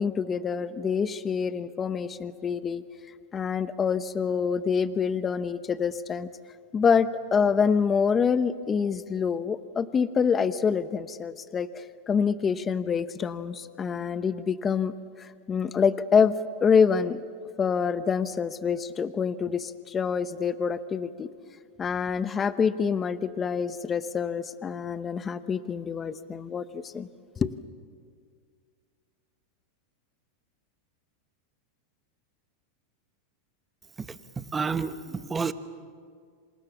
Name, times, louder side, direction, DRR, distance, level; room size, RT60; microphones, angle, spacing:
voice 1, 0.0-2.8 3.3-6.3 6.7-14.9 15.2-16.4 16.6-17.2 17.6-21.3 21.8-27.1 27.4-27.5, left 6 dB, 20° left, 13 dB, 0.9 m, -26 dB
voice 2, 34.4-35.5, right 5 dB, 15° right, 12 dB, 1.1 m, -29 dB
27.5 x 27.0 x 7.2 m, 2.1 s
supercardioid pair, 135°, 0 cm